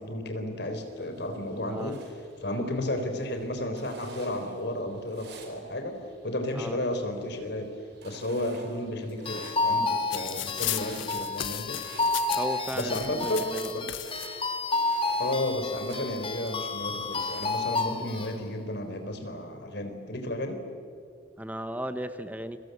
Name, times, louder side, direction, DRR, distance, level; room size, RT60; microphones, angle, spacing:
voice 1, 0.0-2.0 2.4-7.7 8.0-11.8 12.7-13.8 15.2-20.6, left 1 dB, 60° left, 6 dB, 3.9 m, -33 dB
sound 1, 0.6-18.6, right 3 dB, 60° right, 4.6 m, -51 dB
sound 2, 9.3-18.3, left 3 dB, 30° left, 1.9 m, -31 dB
sound 3, 10.1-14.3 15.2-15.3 15.5-16.5 17.2-17.6, left 14 dB, 80° left, 0.7 m, -36 dB
voice 2, 12.4-13.7 21.4-22.6, right 1 dB, 10° right, 10 dB, 0.8 m, -35 dB
29.5 x 23.5 x 8.0 m, 2.3 s
head